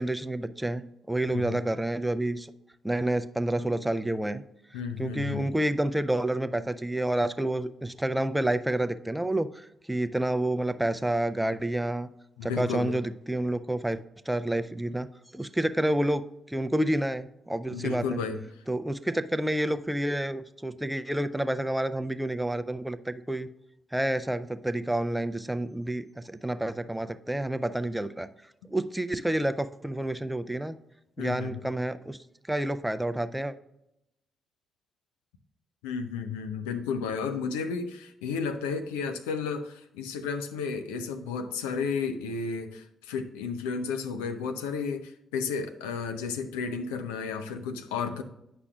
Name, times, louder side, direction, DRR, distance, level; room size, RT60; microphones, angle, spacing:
voice 1, 0.0-2.5 2.8-4.4 5.0-12.1 12.4-14.0 14.3-15.1 15.3-18.2 18.7-23.5 23.9-28.3 28.7-30.8 31.2-32.2 32.5-33.5, right 1 dB, 5° right, 12 dB, 0.5 m, -29 dB
voice 2, 4.7-5.5 12.4-12.9 17.7-18.4 31.2-31.6 35.8-48.2, left 5 dB, 80° left, 8 dB, 0.5 m, -32 dB
9.6 x 6.0 x 2.3 m, 0.84 s
hypercardioid pair, 45°, 0 cm